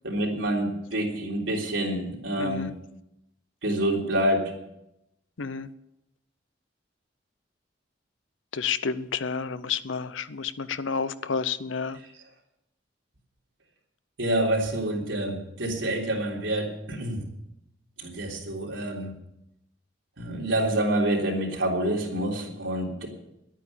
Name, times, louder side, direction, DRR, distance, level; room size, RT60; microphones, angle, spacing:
voice 1, 0.0-2.7 3.6-4.6 14.2-17.2 18.0-19.1 20.2-23.1, right 1 dB, 85° right, -1 dB, 3.5 m, -27 dB
voice 2, 2.4-2.7 5.4-5.7 8.5-12.0, left 5 dB, 90° left, 15 dB, 0.7 m, -30 dB
11.5 x 9.1 x 8.5 m, 0.85 s
head